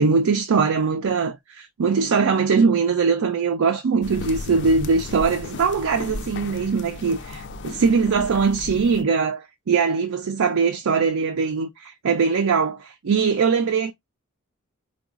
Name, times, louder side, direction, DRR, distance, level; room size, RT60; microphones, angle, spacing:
voice 1, 0.0-13.9, right 5 dB, 65° right, 0.4 m, -21 dB
sound 1, 4.0-9.0, left 3 dB, 55° left, 0.4 m, -35 dB
4.6 x 2.3 x 2.4 m
head